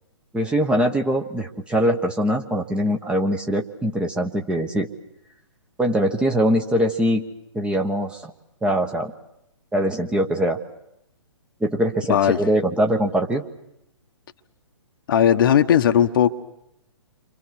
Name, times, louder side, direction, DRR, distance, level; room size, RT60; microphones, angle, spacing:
voice 1, 0.3-4.9 5.8-7.3 7.5-8.3 8.6-9.1 9.7-10.6 11.6-13.4, equal, 5° right, 4 dB, 1.2 m, -22 dB
voice 2, 15.1-16.3, left 9 dB, 45° left, 8 dB, 1.2 m, -17 dB
30.0 x 25.5 x 6.4 m, 0.82 s
figure-of-eight pair, 125°, 16 cm